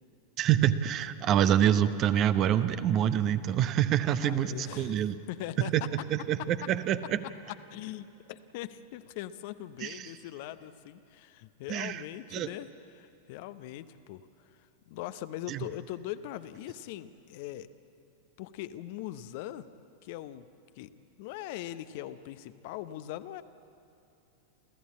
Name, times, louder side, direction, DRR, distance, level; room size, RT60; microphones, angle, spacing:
voice 1, 0.4-5.2 5.7-5.8 6.1-7.2 9.8-10.1 11.7-12.0 12.3-12.5 15.5-15.7, right 10 dB, 35° right, 13 dB, 0.8 m, -26 dB
voice 2, 4.2-5.0 5.3-5.9 7.5-12.7 12.9-14.3 14.9-17.7 18.4-19.7 20.0-20.5 20.8-23.4, left 13 dB, 50° left, 13 dB, 0.8 m, -41 dB
28.5 x 14.5 x 8.4 m, 2.9 s
figure-of-eight pair, 90°, 0 cm